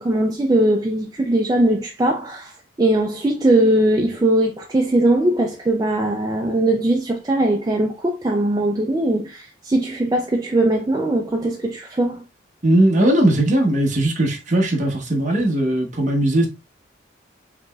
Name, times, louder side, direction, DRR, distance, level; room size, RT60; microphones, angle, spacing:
voice 1, 0.0-12.2, right 1 dB, 20° right, 0.3 m, -20 dB
voice 2, 12.6-16.5, right 1 dB, 40° right, 1.0 m, -18 dB
5.1 x 3.0 x 2.3 m
head